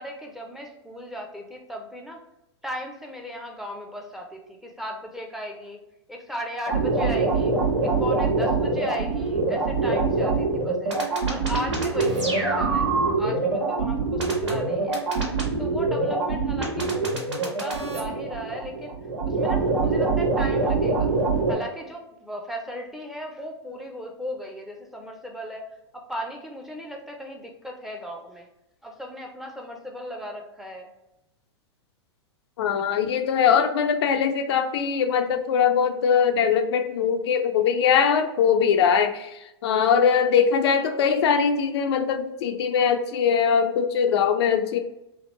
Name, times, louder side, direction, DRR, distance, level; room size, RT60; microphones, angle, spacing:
voice 1, 0.0-2.2 2.6-5.8 6.1-10.9 11.3-12.9 13.2-15.0 15.6-19.0 19.3-21.1 21.5-25.7 25.9-28.5 28.8-30.9, equal, ahead, 1 dB, 0.5 m, -36 dB
sound 1, 6.7-21.5, right 3 dB, 90° right, 1.4 m, -24 dB
voice 2, 32.6-44.8, left 7 dB, 65° left, 6 dB, 0.4 m, -21 dB
3.4 x 2.3 x 3.0 m, 0.89 s
hypercardioid pair, 105°, 15 cm